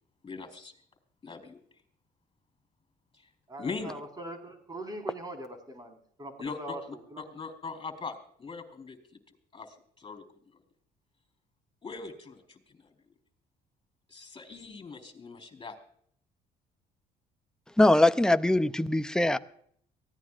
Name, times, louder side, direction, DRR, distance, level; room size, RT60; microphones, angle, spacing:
voice 1, 0.2-0.7 1.2-1.6 3.6-3.9 6.4-6.8 7.2-9.0 9.5-10.2 10.5-10.6 11.8-12.9 14.1-15.8, left 4 dB, 30° left, 4.1 m, -40 dB
voice 2, 3.5-7.3, right 1 dB, 25° right, 4.6 m, -42 dB
voice 3, 17.8-19.4, left 1 dB, 5° left, 0.7 m, -22 dB
24.0 x 16.5 x 2.5 m
cardioid pair, 110°, 17 cm